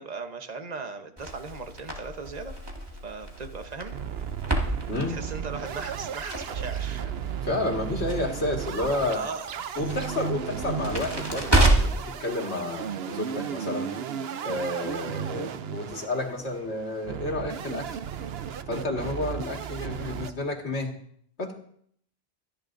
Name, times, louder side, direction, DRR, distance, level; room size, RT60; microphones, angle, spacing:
voice 1, 0.0-2.5 3.0-3.9 5.1-7.2 9.1-9.4, right 4 dB, 40° right, 7 dB, 1.1 m, -37 dB
Crackle, 1.2-12.1, right 2 dB, 20° right, 2.1 m, -29 dB
sound 1, 1.8-2.7 3.1-3.2 3.4-3.5 3.9-20.3, right 8 dB, 70° right, 0.9 m, -35 dB
voice 2, 7.4-9.2 9.8-13.9 14.4-18.0 18.7-21.0 21.4-21.5, left 2 dB, 85° left, 1 dB, 2.2 m, -30 dB
25.5 x 10.5 x 2.6 m, 0.64 s
omnidirectional pair, 1.1 m